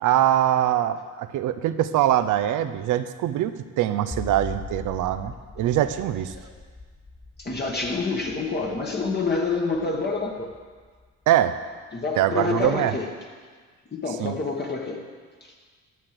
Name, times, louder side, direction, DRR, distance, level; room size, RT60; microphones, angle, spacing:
voice 1, 0.0-6.3 11.3-11.5 12.2-12.9 14.2-14.4, right 12 dB, 85° right, 11 dB, 0.7 m, -23 dB
sound 1, 4.1-11.3, left 3 dB, 10° left, 0.5 m, -41 dB
voice 2, 7.4-10.5 11.9-13.1 13.9-15.0 15.4-15.5, left 3 dB, 35° left, 0 dB, 1.5 m, -27 dB
11.0 x 6.6 x 7.6 m, 1.5 s
cardioid pair, 90°, 30 cm